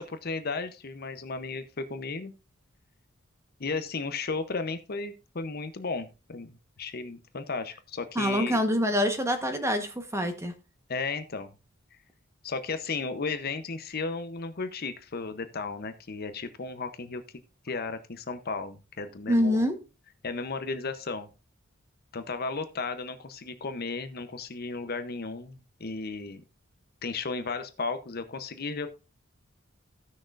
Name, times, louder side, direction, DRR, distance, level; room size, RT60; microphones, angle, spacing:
voice 1, 0.0-2.3 3.6-8.6 10.9-11.5 12.4-17.2 17.6-19.7 20.2-21.3 22.1-26.4 27.0-28.9, left 4 dB, 50° left, 10 dB, 0.8 m, -34 dB
voice 2, 8.1-10.5 19.3-19.7, equal, 15° right, 7 dB, 1.1 m, -25 dB
16.0 x 6.3 x 2.5 m, 0.29 s
head